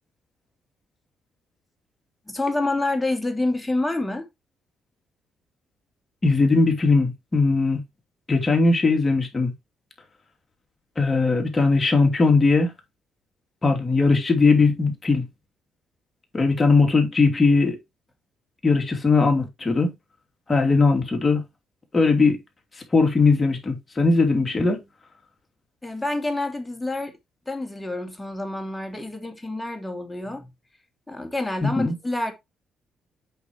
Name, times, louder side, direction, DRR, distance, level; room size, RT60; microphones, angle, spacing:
voice 1, 2.3-4.3 25.8-27.2 27.5-30.5 31.1-32.3, left 2 dB, 10° left, 2.5 m, -28 dB
voice 2, 6.2-7.8 8.3-9.5 11.0-12.7 13.6-15.2 16.3-17.8 18.6-19.9 20.5-21.4 21.9-22.4 22.9-24.8 31.6-31.9, left 3 dB, 25° left, 2.7 m, -19 dB
8.2 x 5.5 x 3.0 m
cardioid pair, 90°, 0 cm